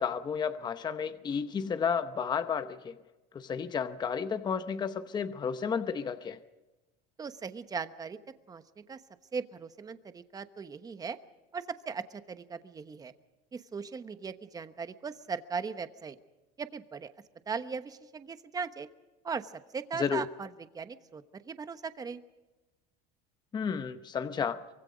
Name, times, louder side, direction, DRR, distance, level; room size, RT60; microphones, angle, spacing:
voice 1, 0.0-3.0 3.3-6.4 20.0-20.2 23.5-24.6, left 6 dB, 20° left, 0.8 m, -32 dB
voice 2, 7.2-8.2 8.5-8.6 8.9-9.0 9.3-11.2 11.5-13.1 13.5-16.2 16.6-17.1 17.5-18.9 19.2-20.5 20.7-22.2, right 5 dB, 20° right, 1.1 m, -38 dB
24.5 x 23.0 x 5.1 m
cardioid pair, 140°, 20 cm